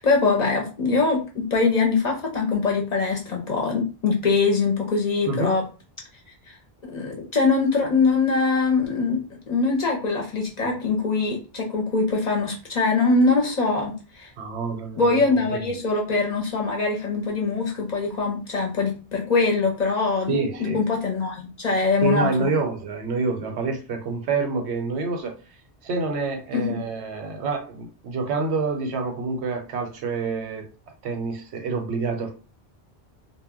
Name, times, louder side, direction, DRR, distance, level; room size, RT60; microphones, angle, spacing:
voice 1, 0.0-5.6 6.5-6.6 6.8-14.3 15.0-22.5 26.5-26.6, left 4 dB, 50° left, 0.6 m, -23 dB
voice 2, 14.4-15.6 20.3-20.8 22.0-25.4 25.8-30.7 31.0-32.3, right 4 dB, 85° right, 0.9 m, -27 dB
2.1 x 2.1 x 3.5 m
omnidirectional pair, 1.1 m